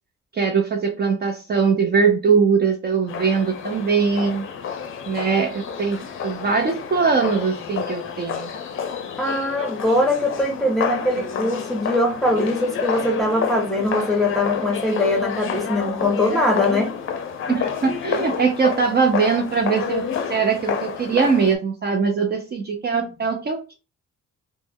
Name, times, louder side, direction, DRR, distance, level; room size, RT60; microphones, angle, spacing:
voice 1, 0.3-4.4 5.1-8.5 17.5-20.0 20.3-23.7, right 5 dB, 35° right, 3 dB, 0.5 m, -21 dB
sound 1, 3.1-21.6, left 7 dB, 45° left, 0.5 m, -29 dB
voice 2, 9.2-16.9, left 1 dB, ahead, 0 dB, 0.8 m, -22 dB
3.1 x 2.1 x 3.5 m, 0.30 s
cardioid pair, 140°, 29 cm